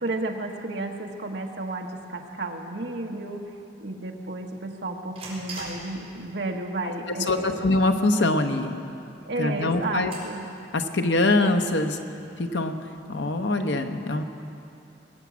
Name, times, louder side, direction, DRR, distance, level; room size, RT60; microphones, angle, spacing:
voice 1, 0.0-3.4 3.8-7.6 9.2-10.5, right 2 dB, 65° right, 2 dB, 1.3 m, -32 dB
sound 1, 3.6-12.5, right 2 dB, 35° right, 4.6 m, -47 dB
voice 2, 7.1-8.8 9.4-10.1 10.7-12.0 12.4-12.8 13.1-14.2, left 2 dB, 80° left, 6 dB, 1.0 m, -23 dB
20.0 x 8.3 x 7.5 m, 2.7 s
head